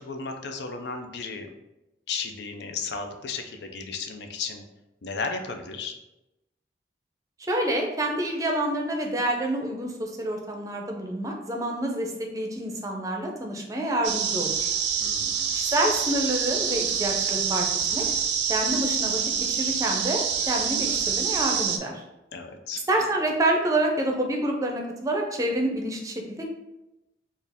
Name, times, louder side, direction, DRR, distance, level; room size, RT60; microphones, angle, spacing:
voice 1, 0.0-1.5 2.1-4.6 5.0-5.9 15.0-15.6 22.3-22.8, left 4 dB, 75° left, 5 dB, 0.5 m, -34 dB
voice 2, 7.4-14.7 15.5-17.7 17.9-18.1 18.5-22.0 22.9-26.4, right 1 dB, 20° right, 1 dB, 0.6 m, -27 dB
sound 1, 14.0-21.8, right 7 dB, 80° right, 0.4 m, -26 dB
4.4 x 2.4 x 3.5 m, 0.95 s
head